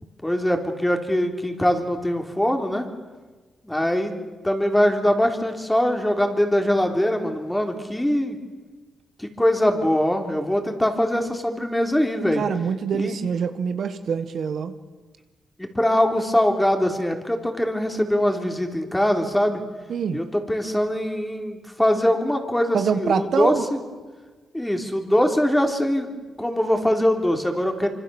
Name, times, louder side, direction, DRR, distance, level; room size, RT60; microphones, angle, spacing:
voice 1, 0.2-2.9 3.6-4.1 4.4-8.4 9.2-12.4 12.9-13.2 15.6-19.6 20.1-23.8 24.5-27.9, left 1 dB, 10° left, 4 dB, 3.7 m, -22 dB
voice 2, 12.4-14.7 19.9-20.2 22.7-23.6, right 6 dB, 65° right, 9 dB, 1.5 m, -25 dB
26.0 x 25.0 x 7.2 m, 1.3 s
cardioid pair, 80°, 0 cm